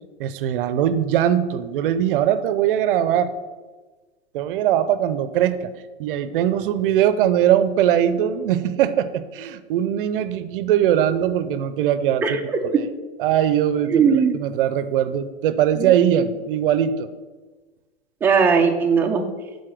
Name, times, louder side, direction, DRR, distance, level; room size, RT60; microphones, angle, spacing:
voice 1, 0.2-3.3 4.3-5.7 6.0-12.4 12.7-12.9 13.2-14.0 14.3-17.1, right 10 dB, 55° right, 13 dB, 0.6 m, -21 dB
voice 2, 13.9-14.4 15.8-15.9 18.2-19.2, right 6 dB, 5° right, 2 dB, 0.4 m, -18 dB
6.6 x 4.1 x 6.2 m, 1.3 s
hypercardioid pair, 130°, 32 cm